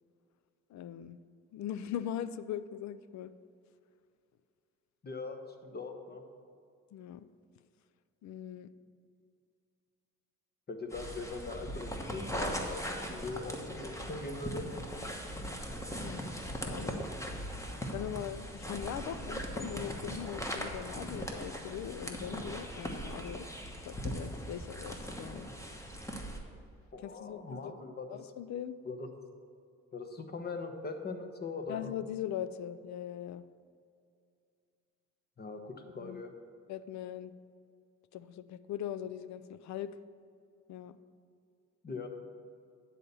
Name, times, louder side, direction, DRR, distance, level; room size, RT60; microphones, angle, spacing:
voice 1, 0.7-1.2 1.5-3.3 6.9-7.3 8.2-8.7 16.0-17.0 17.9-23.5 23.8-25.5 27.0-27.7 28.1-28.8 31.7-33.4 36.0-36.2 36.7-37.3 38.1-39.9 40.7-41.0, left 10 dB, 65° left, 13 dB, 0.5 m, -40 dB
voice 2, 5.0-6.2 10.7-14.7 26.9-28.2 28.8-29.1 29.9-31.9 35.4-36.3 41.8-42.1, left 3 dB, 35° left, 5 dB, 1.1 m, -41 dB
sound 1, 10.9-26.4, equal, 10° left, 1.1 m, -39 dB
9.9 x 4.2 x 6.9 m, 2.4 s
cardioid pair, 90°, 30 cm